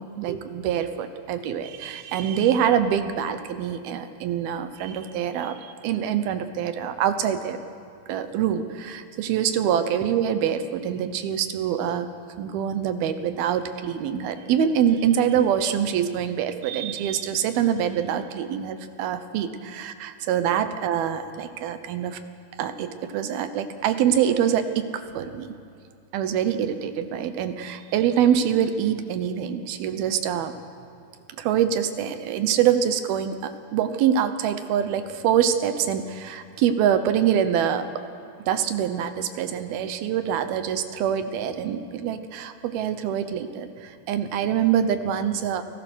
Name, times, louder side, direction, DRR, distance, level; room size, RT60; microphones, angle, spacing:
voice 1, 0.0-7.6 8.1-12.1 12.4-22.2 22.6-25.5 26.1-30.5 31.4-37.9 38.5-45.6, right 9 dB, 75° right, 10 dB, 2.7 m, -25 dB
29.5 x 19.0 x 6.3 m, 2.4 s
omnidirectional pair, 4.7 m